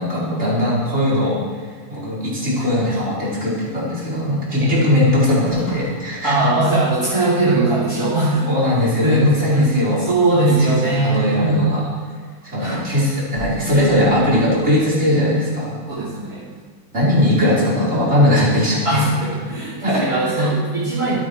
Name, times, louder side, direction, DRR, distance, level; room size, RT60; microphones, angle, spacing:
voice 1, 0.0-6.4 8.5-10.0 10.5-11.8 12.4-15.8 16.9-19.0 19.8-20.5, left 1 dB, 40° right, -8 dB, 5.5 m, -19 dB
sound 1, 5.2-6.7 7.2-7.3 7.7-7.8 9.4-9.5 10.1-10.4 10.9-11.0 12.0-15.2 16.0-16.6 17.1-17.5, equal, 85° left, 3.2 m, -37 dB
voice 2, 6.2-8.5 8.7-11.6 12.6-12.8 13.5-13.6 15.9-16.5 18.8-21.1, right 2 dB, 55° right, -8 dB, 4.6 m, -20 dB
25.0 x 9.2 x 4.9 m, 1.5 s
omnidirectional pair, 1.8 m